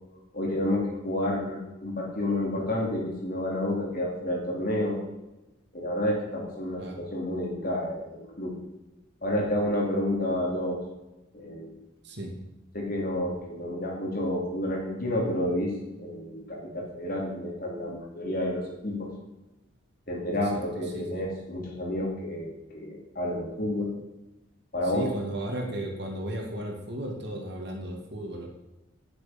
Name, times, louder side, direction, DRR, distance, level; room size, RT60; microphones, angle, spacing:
voice 1, 0.3-5.0 5.7-8.6 9.2-10.8 11.3-11.8 12.7-15.7 16.0-19.1 20.1-23.9 24.7-25.1, left 1 dB, 45° left, -1 dB, 3.6 m, -30 dB
voice 2, 20.9-21.2 24.9-28.5, right 1 dB, 55° right, 1 dB, 2.6 m, -35 dB
11.0 x 10.5 x 5.5 m, 1.0 s
head